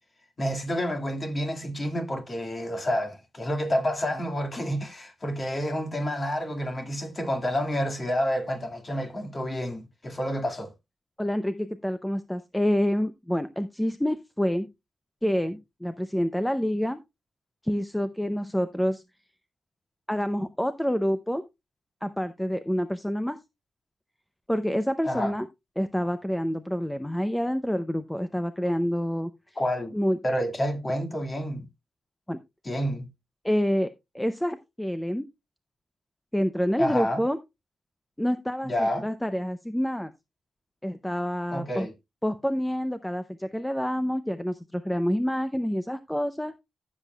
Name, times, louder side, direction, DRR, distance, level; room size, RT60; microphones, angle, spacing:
voice 1, 0.4-10.7 25.0-25.3 29.6-29.9 30.2-31.7 32.7-33.1 36.8-37.2 38.6-39.0 41.5-41.9, equal, 30° left, 2.1 m, -29 dB
voice 2, 11.2-14.7 15.2-17.0 17.6-19.0 20.1-21.4 22.0-23.4 24.5-25.5 25.8-29.6 29.9-30.2 32.3-32.4 33.4-33.9 34.1-35.3 36.3-37.4 38.2-40.1 40.8-41.9 42.2-46.6, equal, 5° left, 0.6 m, -27 dB
15.0 x 7.5 x 2.3 m
wide cardioid pair, 130°, 0 cm